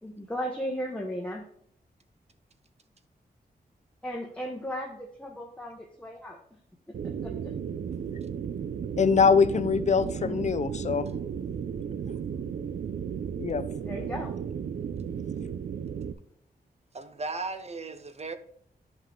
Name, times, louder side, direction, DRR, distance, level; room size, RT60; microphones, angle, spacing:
voice 1, 0.0-1.4 4.0-6.6 6.9-7.5 10.0-10.4 13.8-14.4, equal, 5° left, 0.9 m, -36 dB
sound 1, 6.9-16.1, right 7 dB, 85° right, 0.6 m, -34 dB
voice 2, 9.0-11.1 13.4-13.6, left 5 dB, 45° left, 0.5 m, -23 dB
voice 3, 16.9-18.4, right 3 dB, 40° right, 0.7 m, -36 dB
10.0 x 5.5 x 3.8 m
wide cardioid pair, 145°, 16 cm